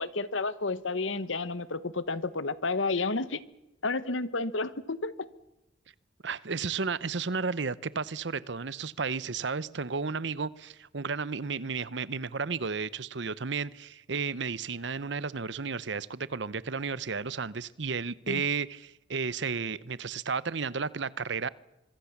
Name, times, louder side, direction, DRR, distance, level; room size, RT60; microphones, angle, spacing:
voice 1, 0.0-3.4 3.8-5.3 18.3-18.4, left 3 dB, 80° left, 16 dB, 1.2 m, -31 dB
voice 2, 6.2-21.5, right 5 dB, 65° right, 19 dB, 0.8 m, -33 dB
25.5 x 23.0 x 7.3 m, 0.90 s
head